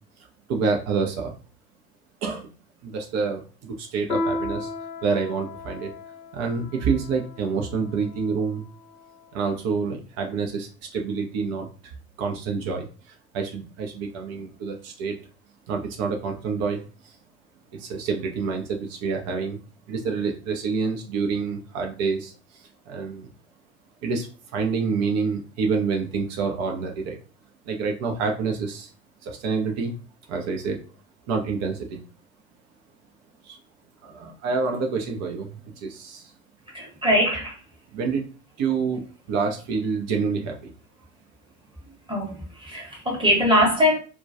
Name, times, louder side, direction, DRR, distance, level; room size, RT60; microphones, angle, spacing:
voice 1, 0.5-1.3 2.2-2.5 2.8-4.7 5.0-5.9 6.3-8.7 9.3-15.2 15.7-17.1 17.7-19.6 19.9-23.3 24.0-27.2 27.6-28.9 29.2-29.9 30.3-30.8 31.3-32.0 33.4-33.6 34.0-36.3 37.9-38.2 38.6-40.7, right 5 dB, 40° right, 0.5 m, -27 dB
Piano, 4.1-9.1, left 2 dB, 85° left, 0.6 m, -34 dB
voice 2, 36.7-37.6 42.1-44.0, equal, 10° right, 1.0 m, -22 dB
2.2 x 2.1 x 2.6 m
figure-of-eight pair, 70°, 43 cm